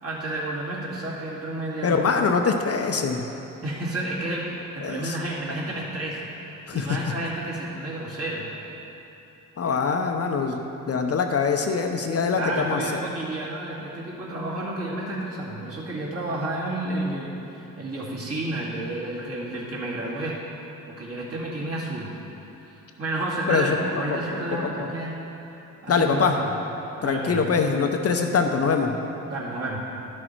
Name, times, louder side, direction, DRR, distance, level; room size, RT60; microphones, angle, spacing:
voice 1, 0.0-2.1 3.6-6.3 6.7-8.5 12.3-20.4 20.9-22.2 22.6-25.2 25.8-26.5 27.0-27.4 29.3-29.8, right 1 dB, 40° right, -5 dB, 2.3 m, -31 dB
voice 2, 1.8-3.2 4.8-5.1 6.7-6.9 9.6-10.6 10.9-12.8 23.5-23.8 24.1-24.4 24.8-24.9 25.9-26.4 27.0-28.9, left 5 dB, 45° left, 4 dB, 0.7 m, -23 dB
11.5 x 6.4 x 4.5 m, 3.0 s
cardioid pair, 80°, 35 cm